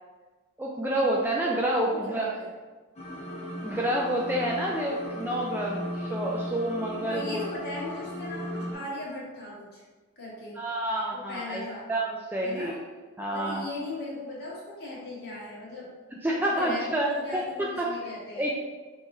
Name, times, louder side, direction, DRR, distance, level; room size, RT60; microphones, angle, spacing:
voice 1, 0.6-2.3 3.6-7.4 10.6-12.8 13.2-13.6 16.2-17.9 18.4-18.5, right 1 dB, 10° right, -3 dB, 0.3 m, -28 dB
voice 2, 1.8-2.5 7.1-9.8 10.2-10.6 11.1-11.8 12.4-12.7 13.3-15.9 16.3-18.5, left 2 dB, 45° left, -7 dB, 1.4 m, -38 dB
sound 1, 3.0-8.7, equal, 30° left, 0.8 m, -36 dB
5.6 x 3.1 x 2.7 m, 1.3 s
head